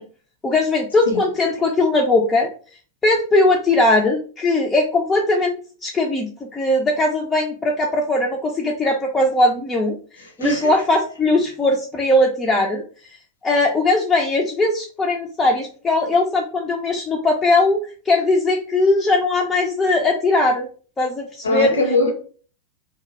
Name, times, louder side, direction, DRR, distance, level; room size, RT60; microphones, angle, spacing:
voice 1, 0.4-2.5 3.0-5.5 5.8-9.9 10.4-12.8 13.4-17.8 18.1-20.7 21.0-21.7, left 2 dB, 15° left, 0.3 m, -19 dB
voice 2, 10.2-10.8 21.4-22.1, left 2 dB, 70° left, 0.6 m, -21 dB
2.2 x 2.0 x 2.8 m
figure-of-eight pair, 90°, 0 cm